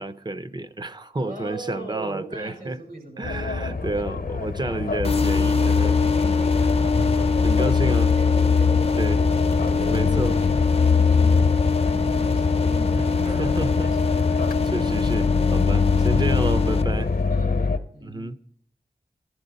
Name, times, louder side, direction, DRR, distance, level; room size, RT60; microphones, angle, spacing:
voice 1, 0.0-2.8 3.2-6.0 7.1-8.1 9.0-9.2 9.9-10.4 12.9-13.9 14.4-17.1 18.0-18.4, right 2 dB, 30° right, 0.7 m, -30 dB
voice 2, 1.2-4.1 4.6-4.9 6.1-10.1 10.4-10.5 10.8-11.4 11.8-14.0 15.8-16.1 16.4-16.5 16.9-18.2, right 2 dB, 75° right, 5.9 m, -40 dB
sound 1, 3.2-17.8, left 5 dB, 75° left, 0.8 m, -22 dB
sound 2, 5.0-16.8, left 4 dB, 40° left, 0.6 m, -25 dB
15.0 x 11.0 x 4.1 m
wide cardioid pair, 75°, 15 cm